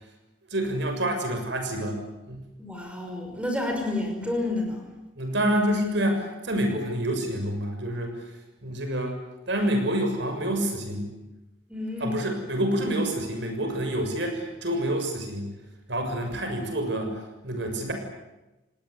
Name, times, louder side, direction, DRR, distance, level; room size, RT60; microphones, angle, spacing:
voice 1, 0.5-2.4 5.2-8.3 8.6-9.2 9.5-11.1 12.0-15.5 15.9-17.9, right 1 dB, 60° right, 4 dB, 6.8 m, -27 dB
voice 2, 2.6-4.9 11.7-12.2, left 2 dB, 5° right, 2 dB, 5.6 m, -30 dB
30.0 x 19.5 x 8.5 m, 1.0 s
head